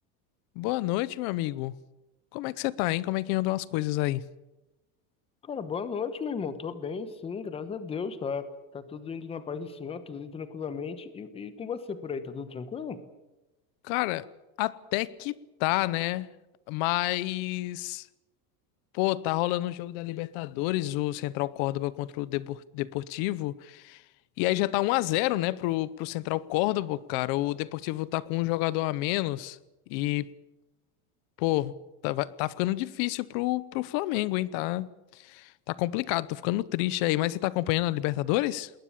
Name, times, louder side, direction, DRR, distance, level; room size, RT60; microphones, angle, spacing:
voice 1, 0.6-1.7 2.3-4.2 13.8-14.2 14.6-16.3 16.7-18.1 18.9-24.0 24.4-29.6 29.9-30.3 31.4-31.7 32.0-38.7, left 17 dB, 40° left, 0.7 m, -29 dB
voice 2, 5.4-13.0, left 6 dB, 15° left, 1.0 m, -35 dB
20.5 x 18.5 x 8.7 m
cardioid pair, 180°, 44 cm